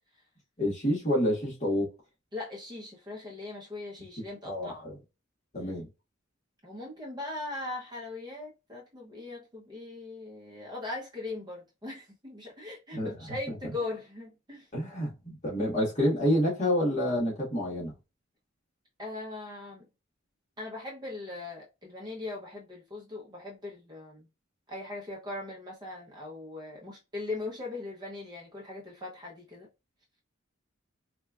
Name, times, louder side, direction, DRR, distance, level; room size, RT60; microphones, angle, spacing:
voice 1, 0.6-1.9 4.4-5.0 5.5-5.9 12.9-13.4 13.6-13.7 14.7-17.9, equal, 35° left, 1.5 m, -28 dB
voice 2, 2.3-4.8 5.6-5.7 6.6-14.7 19.0-19.8 20.6-24.3 24.7-29.7, left 2 dB, 20° right, 0.8 m, -40 dB
4.3 x 2.4 x 2.3 m
head